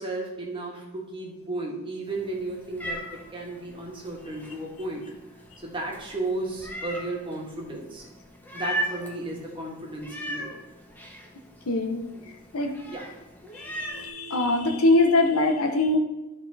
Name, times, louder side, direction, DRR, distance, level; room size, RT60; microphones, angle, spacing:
voice 1, 0.0-5.0 5.6-8.1 8.5-10.5 12.9-13.1, right 2 dB, 25° right, -2 dB, 1.8 m, -34 dB
Meow, 2.1-14.1, right 1 dB, 10° left, 1.0 m, -39 dB
voice 2, 11.7-12.1 12.5-12.7 13.5-16.0, left 2 dB, 75° left, 4 dB, 1.0 m, -23 dB
11.5 x 4.3 x 4.2 m, 1.1 s
head